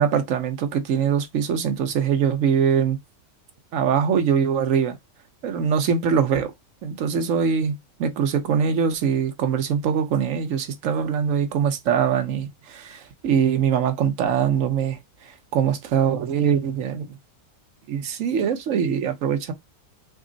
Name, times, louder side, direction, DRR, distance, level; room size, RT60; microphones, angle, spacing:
voice 1, 0.0-3.0 3.7-5.0 5.4-6.5 6.8-15.0 15.5-17.1 17.9-19.5, right 7 dB, 55° right, 1.1 m, -22 dB
6.2 x 2.1 x 3.9 m
omnidirectional pair, 1.8 m